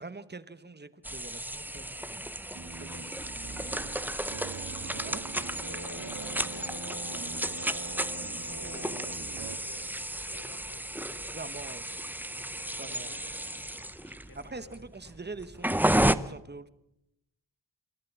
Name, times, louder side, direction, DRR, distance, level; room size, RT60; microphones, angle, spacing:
voice 1, 0.0-2.3 2.8-3.0 5.0-5.2 11.3-11.9 12.8-13.1 14.3-16.7, right 3 dB, 25° right, 1.0 m, -44 dB
sound 1, 1.0-16.1, right 1 dB, 5° right, 0.6 m, -33 dB
sound 2, 2.5-9.6, right 2 dB, 45° right, 2.2 m, -44 dB
voice 2, 2.8-4.4 5.4-8.1 8.4-11.6 12.5-15.2, left 3 dB, 55° left, 4.0 m, -54 dB
sound 3, 3.7-9.1 9.4-9.6, right 10 dB, 85° right, 0.9 m, -47 dB
26.5 x 13.5 x 7.2 m
wide cardioid pair, 95°, 42 cm